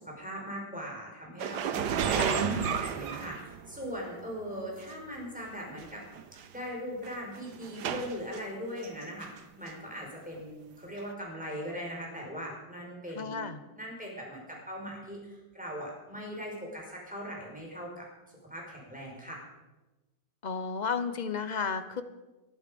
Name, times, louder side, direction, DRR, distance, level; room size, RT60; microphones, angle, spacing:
voice 1, 0.0-6.0 6.5-18.1 18.5-19.4, equal, 5° right, -2 dB, 5.2 m, -40 dB
sound 1, 1.4-4.0 4.8-4.9 5.8-5.9 6.1-6.5 7.0-8.4 8.8-9.4 9.7-9.8 11.0-11.1, right 8 dB, 70° right, 1.5 m, -32 dB
voice 2, 2.2-2.8 13.2-13.6 20.4-22.0, left 5 dB, 40° left, 10 dB, 0.6 m, -33 dB
20.5 x 11.5 x 5.2 m, 1.1 s
omnidirectional pair, 1.9 m